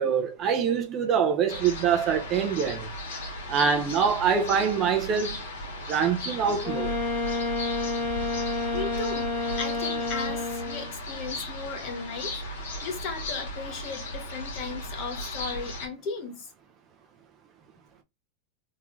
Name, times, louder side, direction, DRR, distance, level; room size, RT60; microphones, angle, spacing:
voice 1, 0.0-2.9 3.5-5.4 5.9-6.9, right 7 dB, 25° right, 0.6 m, -25 dB
sound 1, 1.5-15.9, left 1 dB, 80° left, 1.9 m, -36 dB
Wind instrument woodwind instrument, 6.6-11.0, left 3 dB, 5° left, 1.2 m, -30 dB
voice 2, 8.7-12.4 12.8-16.5, left 4 dB, 35° left, 1.0 m, -36 dB
3.6 x 2.8 x 3.0 m
supercardioid pair, 160°, 0 cm